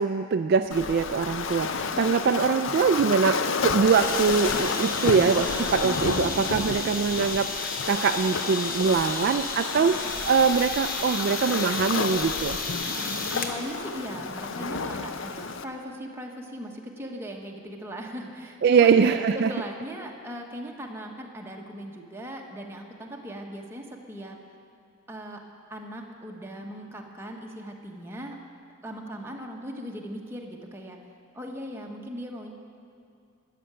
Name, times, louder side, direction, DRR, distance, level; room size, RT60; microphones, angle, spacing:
voice 1, 0.0-12.6 18.6-19.5, right 5 dB, 50° right, 8 dB, 0.3 m, -23 dB
Waves surf, 0.7-15.6, left 5 dB, 65° left, 0.5 m, -31 dB
sound 1, 3.8-13.6, left 4 dB, 45° left, 1.0 m, -33 dB
voice 2, 12.9-19.0 19.3-24.4 25.1-25.4 25.7-28.4 28.8-31.0 31.3-32.5, equal, 10° right, 0 dB, 1.1 m, -39 dB
13.0 x 6.7 x 8.8 m, 2.5 s
head